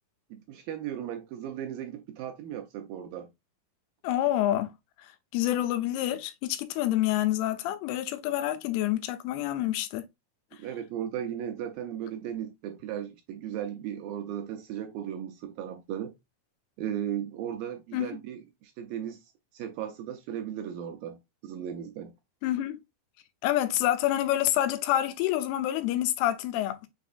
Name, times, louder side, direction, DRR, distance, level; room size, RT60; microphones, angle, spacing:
voice 1, 0.3-3.3 10.6-16.1 16.8-22.1, right 10 dB, 80° right, 2.1 m, -36 dB
voice 2, 4.0-4.7 5.0-10.1 17.9-18.1 22.4-22.8 23.4-26.9, left 13 dB, 85° left, 2.6 m, -27 dB
6.1 x 3.4 x 2.4 m
omnidirectional pair, 4.5 m